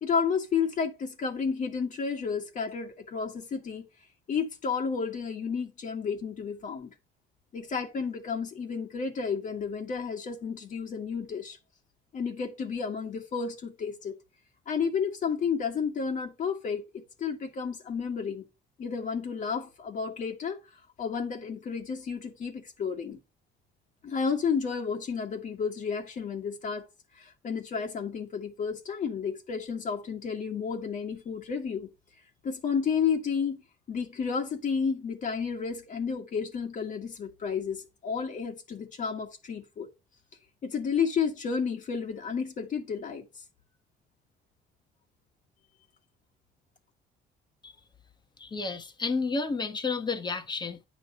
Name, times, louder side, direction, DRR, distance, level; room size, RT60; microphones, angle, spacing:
voice 1, 0.0-3.8 4.3-6.9 7.5-11.6 12.1-14.1 14.7-18.4 18.8-20.6 21.0-23.2 24.0-26.9 27.1-31.9 32.4-33.6 33.9-39.9 40.6-43.4, left 6 dB, 50° left, 1.5 m, -31 dB
voice 2, 48.4-50.9, left 4 dB, 25° left, 1.1 m, -31 dB
9.3 x 3.3 x 6.4 m
cardioid pair, 110°, 17 cm